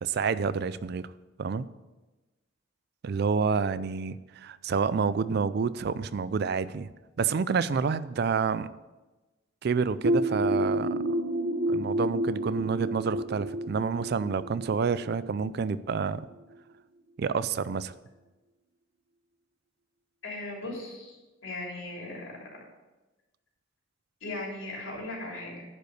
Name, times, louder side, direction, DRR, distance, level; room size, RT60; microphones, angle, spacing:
voice 1, 0.0-1.1 1.4-1.7 3.0-6.9 7.2-8.7 9.6-11.0 11.7-16.2 17.2-17.9, right 5 dB, 55° right, 16 dB, 0.4 m, -28 dB
sound 1, 10.0-15.6, right 1 dB, 85° right, 1.2 m, -29 dB
voice 2, 20.2-21.2 21.4-22.5 24.2-25.6, left 2 dB, 75° left, -3 dB, 3.4 m, -37 dB
10.5 x 5.3 x 6.5 m, 1.1 s
head